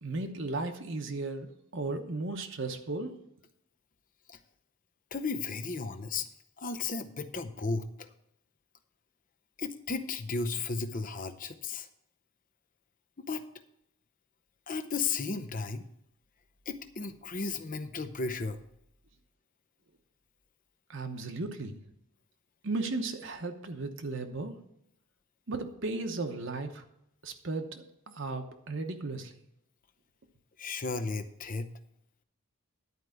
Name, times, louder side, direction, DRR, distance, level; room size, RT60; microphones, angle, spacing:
voice 1, 0.0-3.2 20.9-21.8 22.6-24.5 25.5-26.8 27.2-29.3, right 3 dB, 55° right, 5 dB, 1.0 m, -35 dB
voice 2, 5.1-6.3 6.6-8.1 9.6-11.9 13.3-13.4 14.7-15.8 16.7-18.6 30.6-31.7, left 4 dB, 35° left, 10 dB, 0.7 m, -34 dB
11.0 x 4.8 x 7.9 m, 0.76 s
head